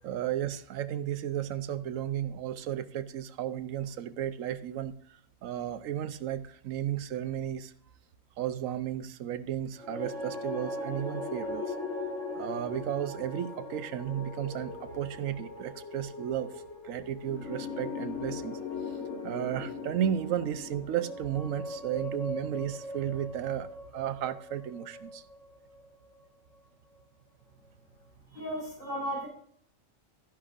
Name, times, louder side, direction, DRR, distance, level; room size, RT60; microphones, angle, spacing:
voice 1, 0.0-5.0 5.4-7.7 8.4-11.8 12.3-18.6 18.9-19.0 19.2-25.2, right 10 dB, 80° right, 11 dB, 1.1 m, -34 dB
sound 1, 9.8-26.1, left 3 dB, 60° left, 2.0 m, -39 dB
voice 2, 28.3-29.3, equal, 40° left, -3 dB, 4.0 m, -35 dB
12.5 x 10.5 x 2.5 m, 0.64 s
omnidirectional pair, 1.4 m